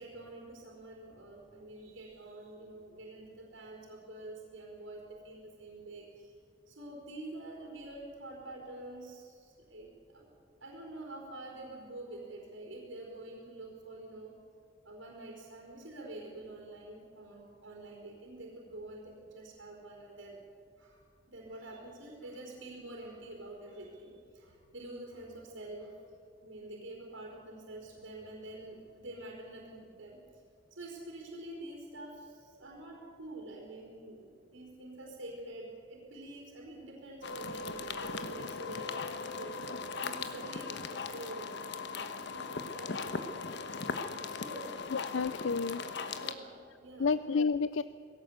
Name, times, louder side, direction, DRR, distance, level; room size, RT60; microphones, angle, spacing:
voice 1, 0.0-6.3 6.7-10.3 10.6-14.4 14.8-20.4 20.8-26.0 26.4-30.4 30.7-39.6 40.0-41.5 42.3-43.4 44.2-44.9 46.1-47.1, right 1 dB, 90° right, -1 dB, 4.5 m, -47 dB
sound 1, 37.2-46.3, left 4 dB, 65° left, 1.3 m, -39 dB
voice 2, 44.9-45.8 47.0-47.8, left 5 dB, 85° left, 14 dB, 0.5 m, -30 dB
20.5 x 17.0 x 8.1 m, 2.4 s
head